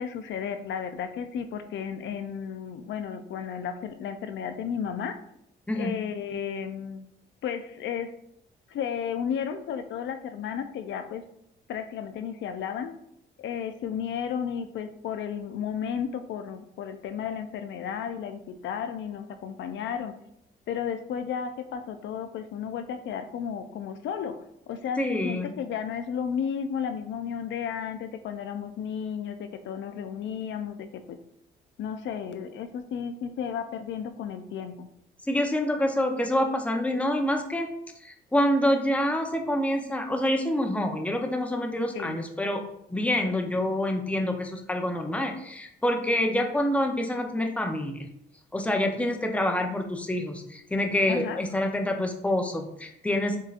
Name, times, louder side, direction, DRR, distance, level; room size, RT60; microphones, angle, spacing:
voice 1, 0.0-5.2 5.8-7.1 7.4-8.2 8.7-11.2 11.7-12.9 13.4-20.1 20.7-31.2 31.8-34.9 41.9-42.2 51.1-51.4, left 7 dB, 70° left, 8 dB, 0.4 m, -33 dB
voice 2, 5.7-6.0 25.0-25.5 35.2-37.7 38.0-42.6 42.9-48.0 48.5-53.4, left 1 dB, 5° left, 4 dB, 0.7 m, -27 dB
7.3 x 2.7 x 2.4 m, 0.75 s
cardioid pair, 90°, 20 cm